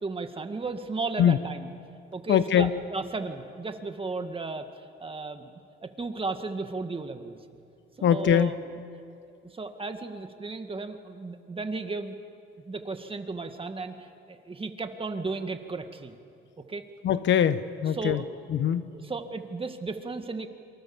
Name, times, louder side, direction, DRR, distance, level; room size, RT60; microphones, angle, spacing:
voice 1, 0.0-1.7 2.1-5.5 5.8-7.4 8.0-8.6 9.4-12.1 12.6-16.1 16.7-16.8 17.9-18.3 18.9-20.5, right 3 dB, 25° right, 6 dB, 2.1 m, -35 dB
voice 2, 2.3-2.7 8.0-8.5 17.0-18.2 18.5-18.9, left 9 dB, 70° left, 13 dB, 1.0 m, -22 dB
28.0 x 24.5 x 7.3 m, 2.6 s
cardioid pair, 90°, 20 cm